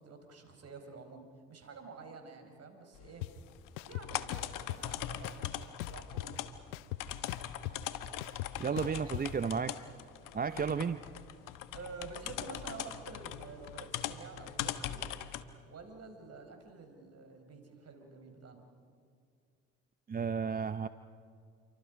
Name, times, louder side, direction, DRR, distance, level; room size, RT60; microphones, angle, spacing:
voice 1, 0.0-3.3 3.9-6.4 8.8-9.0 10.4-10.7 11.7-15.1 15.7-18.6, right 4 dB, 45° right, 5 dB, 5.2 m, -49 dB
sound 1, 2.9-15.4, left 11 dB, 65° left, 1.3 m, -41 dB
sound 2, 3.2-3.3 3.8-4.8 5.2-6.4 6.7-9.2, left 17 dB, 85° left, 0.7 m, -39 dB
voice 2, 8.6-9.7 10.3-11.0 20.1-20.9, right 6 dB, 25° right, 12 dB, 0.7 m, -33 dB
28.5 x 24.5 x 5.2 m, 2.3 s
hypercardioid pair, 65°, 34 cm